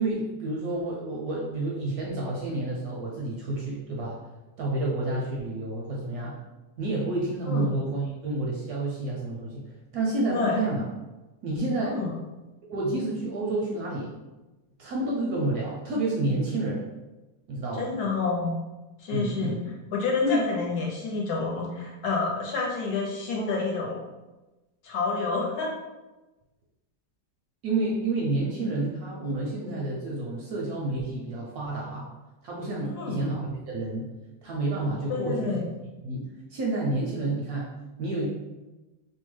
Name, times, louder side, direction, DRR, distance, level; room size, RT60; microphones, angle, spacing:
voice 1, 0.0-4.2 4.6-6.4 6.8-9.6 9.9-10.9 11.4-12.1 12.7-14.1 14.8-16.8 17.5-18.0 19.1-19.6 20.2-20.4 27.6-32.1 32.4-34.1 34.4-35.6 36.0-37.7 38.0-38.3, right 2 dB, 70° right, -3 dB, 0.9 m, -29 dB
voice 2, 17.7-18.6 19.0-19.5 19.9-24.0 24.8-25.7 32.8-33.3 35.1-35.6, left 4 dB, 65° left, -2 dB, 1.1 m, -28 dB
2.9 x 2.2 x 3.1 m, 1.1 s
omnidirectional pair, 1.9 m